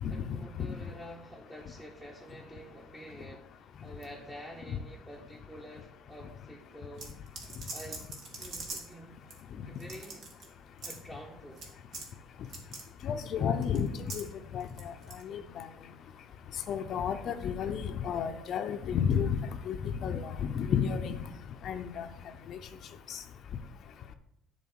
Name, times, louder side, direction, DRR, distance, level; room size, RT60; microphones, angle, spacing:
voice 1, 0.1-3.5 3.8-7.1 7.7-8.1 8.4-9.2 9.6-10.3 10.8-11.6, equal, 10° right, -1 dB, 1.0 m, -48 dB
sound 1, 7.0-8.9 9.3-9.4 9.7-10.5 10.8-11.0 11.5-11.7 11.9-12.1 12.4-12.8 13.6-14.3 14.6-15.2, right 3 dB, 60° right, 1.7 m, -42 dB
voice 2, 13.0-13.9 14.1-14.2 14.5-14.9 15.2-15.6 16.7-19.4 19.7-21.2 21.6-22.1 22.5-22.6 23.1-23.2, left 7 dB, 55° left, 8 dB, 0.6 m, -31 dB
7.2 x 3.8 x 6.2 m, 0.79 s
supercardioid pair, 85°, 0 cm